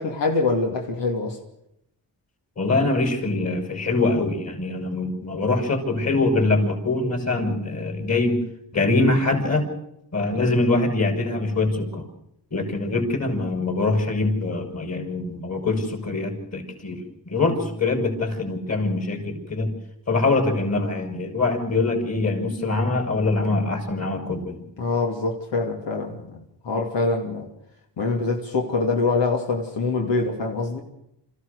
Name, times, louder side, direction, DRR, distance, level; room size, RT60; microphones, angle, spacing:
voice 1, 0.0-1.4 24.8-26.4 26.6-27.5 28.0-30.8, left 3 dB, 85° left, 2.9 m, -24 dB
voice 2, 2.6-8.4 8.7-9.7 10.1-12.1 12.5-19.8 20.1-24.6, left 2 dB, 35° left, 5.6 m, -23 dB
27.0 x 15.0 x 6.6 m
cardioid pair, 85°, 42 cm